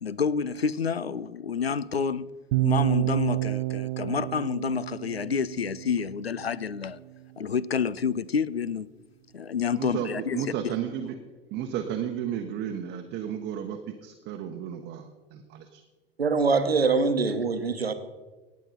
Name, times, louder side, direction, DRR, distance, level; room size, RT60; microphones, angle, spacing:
voice 1, 0.0-2.3 2.6-7.0 7.4-8.9 9.3-10.7, left 6 dB, 90° left, 0.5 m, -29 dB
sound 1, 2.5-6.6, right 20 dB, 50° right, 0.5 m, -29 dB
voice 2, 9.6-11.2 11.5-15.8, right 9 dB, 35° right, 1.0 m, -33 dB
voice 3, 16.2-17.9, right 4 dB, 85° right, 1.0 m, -23 dB
18.0 x 8.3 x 4.4 m
figure-of-eight pair, 80°, 30 cm